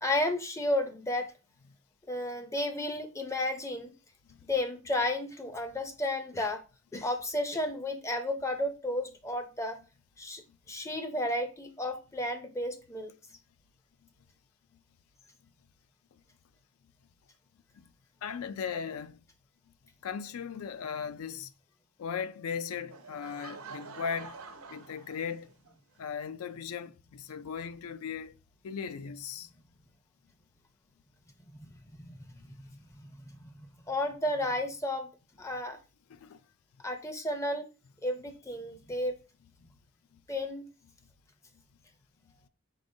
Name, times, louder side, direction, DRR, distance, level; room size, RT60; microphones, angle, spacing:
voice 1, 0.0-1.3 2.1-3.9 4.5-6.6 6.9-9.8 10.2-10.4 10.7-13.1 31.6-31.7 32.0-32.3 32.8-32.9 33.4-33.5 33.9-35.1 35.4-35.8 36.8-37.7 38.0-39.1 40.3-40.7, left 1 dB, 15° left, 0.4 m, -32 dB
voice 2, 18.2-19.2 20.0-21.5 22.0-24.4 24.7-25.5 26.0-28.4 28.6-29.5 32.4-32.8 36.1-36.4 38.7-38.8 40.1-40.2, left 6 dB, 85° left, 0.4 m, -38 dB
Laughter / Crowd, 22.9-25.7, right 4 dB, 80° right, 0.6 m, -47 dB
4.9 x 4.1 x 2.6 m
head